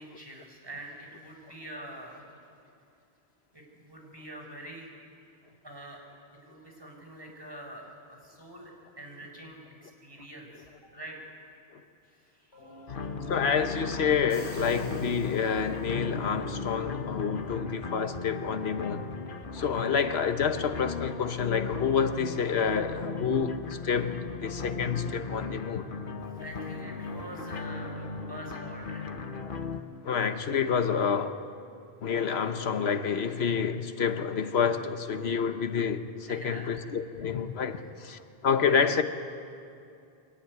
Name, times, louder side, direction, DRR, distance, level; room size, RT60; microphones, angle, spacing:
voice 1, 0.0-2.2 3.5-4.9 5.6-6.0 6.4-8.7 9.0-11.2 12.1-12.7 26.4-29.1 36.3-36.7 37.7-37.8 38.6-38.9, right 1 dB, 20° right, 4.7 m, -45 dB
sound 1, 12.5-28.5, left 1 dB, 85° left, 5.2 m, -51 dB
sound 2, 12.9-29.8, left 4 dB, 55° left, 1.2 m, -37 dB
voice 2, 13.3-19.1 19.5-23.6 23.8-25.9 29.5-29.6 30.0-31.3 32.0-39.0, left 6 dB, 70° left, 1.3 m, -28 dB
sound 3, 14.1-16.2, equal, 25° left, 6.2 m, -48 dB
23.0 x 18.5 x 9.5 m
omnidirectional pair, 1.1 m